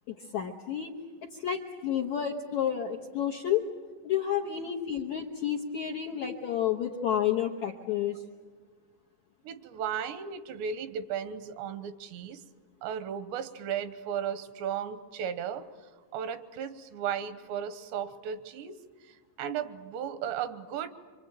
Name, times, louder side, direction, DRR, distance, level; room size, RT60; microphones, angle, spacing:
voice 1, 0.1-0.9 1.2-3.7 4.0-8.2, left 9 dB, 75° left, 1 dB, 1.7 m, -30 dB
voice 2, 9.4-12.4 12.8-15.7 16.1-18.8 19.0-20.9, right 8 dB, 80° right, 11 dB, 3.2 m, -35 dB
26.5 x 25.0 x 9.0 m, 1.5 s
omnidirectional pair, 5.0 m